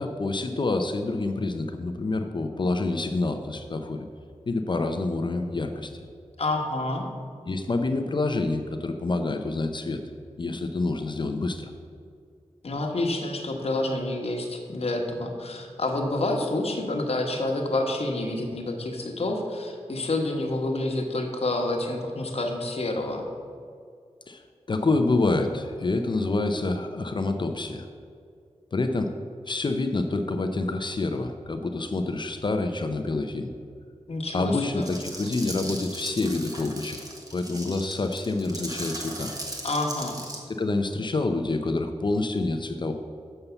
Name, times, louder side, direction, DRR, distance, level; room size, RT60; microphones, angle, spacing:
voice 1, 0.0-4.0 4.5-5.9 7.5-10.0 10.4-11.7 24.3-24.4 24.7-27.9 28.7-29.1 29.5-33.5 34.3-37.0 37.3-39.3 40.6-42.9, left 2 dB, 45° left, 6 dB, 0.5 m, -27 dB
voice 2, 6.4-7.0 12.6-23.2 34.1-34.9 39.6-40.2, left 2 dB, 60° left, 2 dB, 1.2 m, -28 dB
sound 1, 34.8-40.4, right 1 dB, 30° right, 1.3 m, -38 dB
6.8 x 5.6 x 6.9 m, 2.2 s
wide cardioid pair, 90°, 12 cm